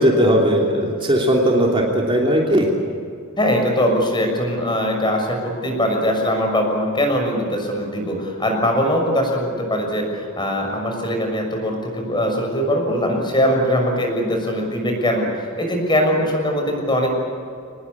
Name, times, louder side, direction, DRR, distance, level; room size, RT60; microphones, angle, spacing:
voice 1, 0.0-2.7, equal, 25° right, -1 dB, 3.1 m, -17 dB
voice 2, 3.4-17.1, equal, 20° left, 2 dB, 6.3 m, -21 dB
25.0 x 20.0 x 8.6 m, 2.3 s
head